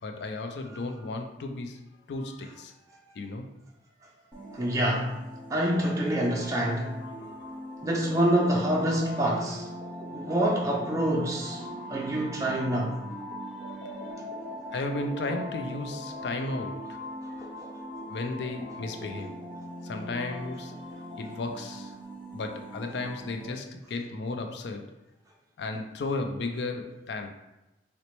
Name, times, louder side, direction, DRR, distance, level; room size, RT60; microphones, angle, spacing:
voice 1, 0.0-1.8 2.1-2.7 3.1-3.5 7.2-7.4 11.7-12.1 13.8-13.9 14.7-17.0 18.1-19.4 19.8-20.7 21.2-21.9 22.3-24.9 25.6-27.3, left 2 dB, 70° left, 5 dB, 0.4 m, -34 dB
sound 1, 4.3-23.5, equal, 5° left, 0.7 m, -40 dB
voice 2, 4.5-5.2 5.5-6.9 7.8-9.7 10.1-11.6 11.9-13.0, right 1 dB, 20° right, -2 dB, 0.3 m, -26 dB
4.0 x 2.1 x 3.0 m, 0.96 s
head